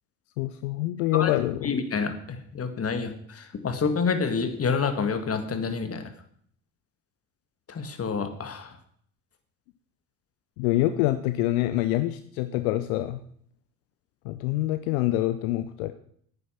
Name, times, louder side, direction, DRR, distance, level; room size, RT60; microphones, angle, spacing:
voice 1, 0.4-1.7 10.6-13.2 14.2-15.9, left 15 dB, 65° left, 12 dB, 0.7 m, -26 dB
voice 2, 1.6-6.0 7.7-8.7, left 5 dB, 30° left, 8 dB, 1.8 m, -28 dB
10.0 x 9.3 x 5.9 m, 0.63 s
figure-of-eight pair, 55°, 45 cm